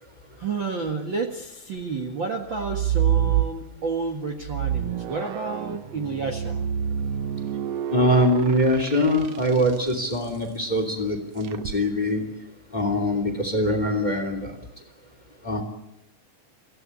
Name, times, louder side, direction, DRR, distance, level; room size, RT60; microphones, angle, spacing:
voice 1, 0.4-6.7, right 4 dB, 45° right, 3 dB, 2.0 m, -30 dB
sound 1, 2.5-3.9 4.4-9.9 11.4-11.8, right 10 dB, 65° right, 1.7 m, -27 dB
voice 2, 7.9-12.2 12.7-14.5 15.4-15.6, equal, 15° left, 6 dB, 2.8 m, -23 dB
26.0 x 16.0 x 9.7 m, 0.89 s
omnidirectional pair, 3.8 m